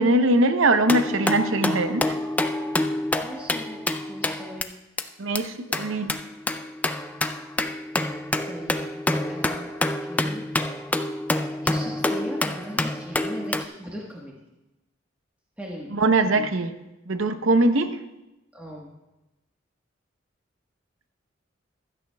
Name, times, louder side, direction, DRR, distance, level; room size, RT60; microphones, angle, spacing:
voice 1, 0.0-2.2 5.2-6.2 15.9-16.7 17.1-18.0, right 2 dB, 85° right, 9 dB, 0.7 m, -21 dB
sound 1, 0.9-4.6 5.0-5.1 5.4-5.5 5.7-13.7, left 1 dB, 10° left, 0.3 m, -27 dB
voice 2, 3.2-4.8 8.4-8.9 9.3-9.7 10.0-10.5 11.6-14.3 15.6-16.5 18.5-18.9, equal, 10° right, -3 dB, 1.2 m, -39 dB
16.0 x 12.0 x 2.3 m, 0.98 s
head